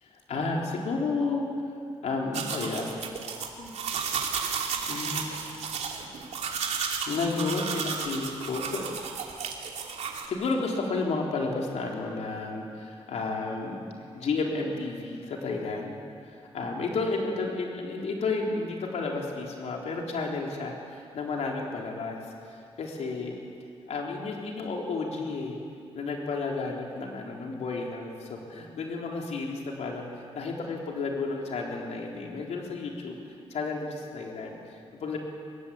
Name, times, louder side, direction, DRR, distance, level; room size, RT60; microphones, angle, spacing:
voice 1, 0.0-1.5 2.0-2.9 3.6-3.7 4.9-5.5 7.1-8.9 10.3-13.8 14.1-23.4 23.9-25.6 25.9-33.2 33.5-35.2, left 3 dB, 85° left, 0 dB, 3.7 m, -32 dB
sound 1, 2.3-10.3, right 6 dB, 90° right, 2.8 m, -33 dB
24.5 x 21.5 x 8.6 m, 2.4 s
wide cardioid pair, 170°, 11 cm